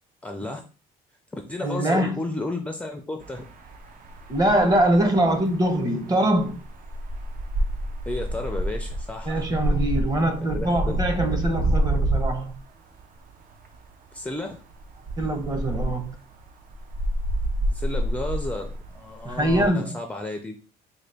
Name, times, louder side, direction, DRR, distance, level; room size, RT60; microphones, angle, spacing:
voice 1, 0.2-0.6 1.3-3.5 8.1-9.4 10.5-11.0 14.1-14.6 17.6-20.6, left 2 dB, 10° left, 0.4 m, -32 dB
voice 2, 1.6-2.2 4.3-6.6 9.3-12.6 15.2-16.2 19.2-20.0, right 1 dB, 20° right, 0.8 m, -23 dB
sound 1, 3.2-12.7 12.9-13.0 13.5-13.9 14.1-14.3 14.7-19.7, right 1 dB, 55° right, 0.6 m, -28 dB
3.9 x 2.2 x 3.3 m
cardioid pair, 110°, 17 cm